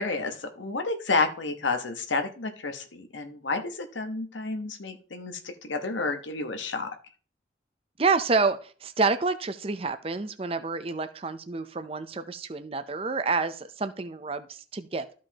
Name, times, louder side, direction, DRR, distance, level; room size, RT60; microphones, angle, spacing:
voice 1, 0.0-6.9, left 3 dB, 85° left, 6 dB, 1.1 m, -30 dB
voice 2, 8.0-15.0, right 4 dB, 30° right, 10 dB, 0.6 m, -28 dB
13.5 x 5.2 x 2.9 m, 0.40 s
head